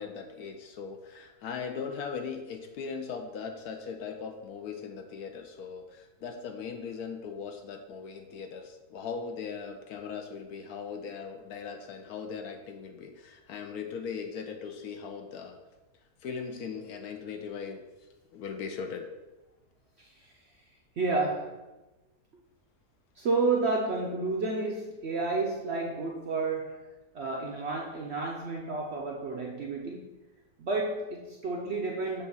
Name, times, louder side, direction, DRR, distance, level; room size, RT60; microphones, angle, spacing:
voice 1, 0.0-15.6 16.2-17.8 18.3-19.1, left 6 dB, 70° left, 5 dB, 1.1 m, -39 dB
voice 2, 21.0-21.6 23.2-26.9 27.1-30.1 30.6-32.2, right 3 dB, 60° right, -1 dB, 0.7 m, -31 dB
7.0 x 2.5 x 5.3 m, 1.1 s
omnidirectional pair, 1.7 m